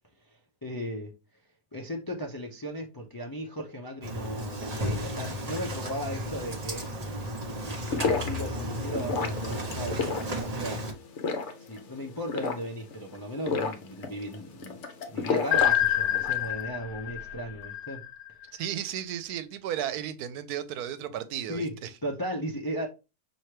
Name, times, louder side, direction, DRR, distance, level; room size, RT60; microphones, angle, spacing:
voice 1, 0.6-1.1 1.7-6.9 7.9-10.1 10.4-10.9 11.6-18.0 21.5-22.9, equal, 30° left, 0.3 m, -36 dB
Engine starting, 4.0-10.9, equal, 35° right, 0.7 m, -34 dB
sound 1, 7.7-16.5, left 4 dB, 60° left, 0.9 m, -32 dB
sound 2, 15.5-18.4, left 12 dB, 85° left, 1.1 m, -27 dB
voice 2, 18.5-21.9, right 10 dB, 90° right, 1.1 m, -34 dB
5.8 x 2.8 x 3.2 m
omnidirectional pair, 1.6 m